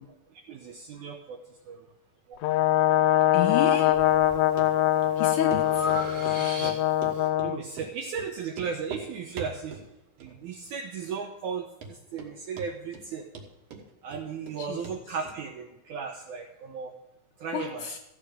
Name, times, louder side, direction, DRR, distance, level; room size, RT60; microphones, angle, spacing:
voice 1, 0.3-1.9 2.3-2.4 6.3-6.8 7.0-9.8 10.2-13.3 14.0-16.9 17.4-17.9, right 6 dB, 80° right, 4 dB, 1.8 m, -36 dB
Brass instrument, 2.4-7.6, left 12 dB, 90° left, 1.8 m, -23 dB
voice 2, 3.3-4.0 5.2-5.9 14.6-15.0 17.5-18.0, left 9 dB, 70° left, 5 dB, 2.0 m, -30 dB
Breathing, 3.9-4.4 4.9-7.1, equal, 25° right, 1.3 m, -37 dB
Run, 4.6-4.7 5.0-5.1 5.5-5.6 5.9-7.5 7.8-7.9 8.2-8.3 8.5-9.1 9.4-9.9 10.2-10.7 10.9-11.0 11.5-11.6 11.8-12.3 12.6-13.1 13.4-14.6 14.8-15.0 15.3-15.4, right 5 dB, 55° right, 1.9 m, -41 dB
14.0 x 8.0 x 5.0 m, 0.94 s
omnidirectional pair, 4.3 m